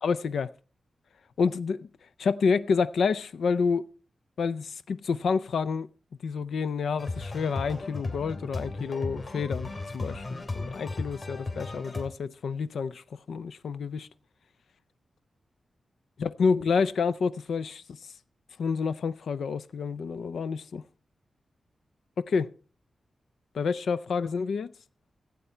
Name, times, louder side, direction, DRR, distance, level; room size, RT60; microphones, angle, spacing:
voice 1, 0.0-0.5 1.4-1.9 2.2-3.9 4.4-5.9 6.2-14.1 16.2-17.8 18.6-20.8 22.2-22.5 23.5-24.7, left 5 dB, 80° left, 0.4 m, -28 dB
sound 1, 7.0-12.0, left 2 dB, 35° left, 2.4 m, -35 dB
15.0 x 8.2 x 4.4 m
wide cardioid pair, 175°, 0 cm